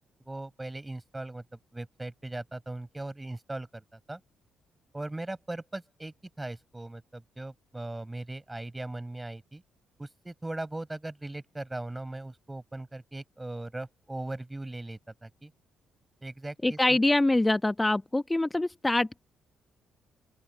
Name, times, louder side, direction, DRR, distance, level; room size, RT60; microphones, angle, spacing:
voice 1, 0.2-1.4 1.7-4.2 4.9-9.6 10.0-15.5 16.2-17.0, right 2 dB, 15° right, 7.5 m, -39 dB
voice 2, 16.6-19.2, left 2 dB, 15° left, 1.0 m, -25 dB
open air
figure-of-eight pair, 45°, 0 cm